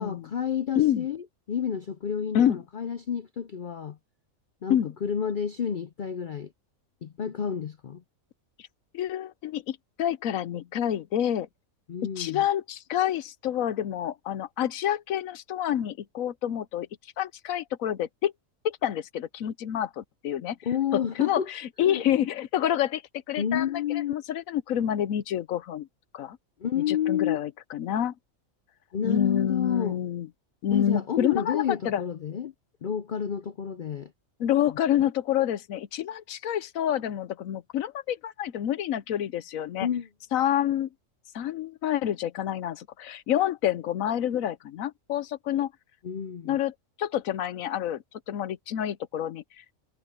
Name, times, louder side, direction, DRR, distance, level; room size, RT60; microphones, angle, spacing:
voice 1, 0.0-4.0 4.6-6.5 7.0-8.0 11.9-12.4 20.6-21.5 21.8-22.0 23.4-24.1 26.6-27.4 28.9-30.0 30.7-32.5 32.8-34.1 39.8-40.1 46.0-46.6, left 8 dB, 55° left, 0.5 m, -30 dB
voice 2, 8.9-11.5 12.2-16.9 17.2-18.3 18.6-20.6 20.9-23.0 23.3-25.9 26.1-26.4 26.7-28.1 29.0-30.3 30.6-32.0 34.4-39.9 40.3-40.9 41.3-45.7 46.4-49.6, left 10 dB, 75° left, 1.1 m, -28 dB
omnidirectional pair, 1.5 m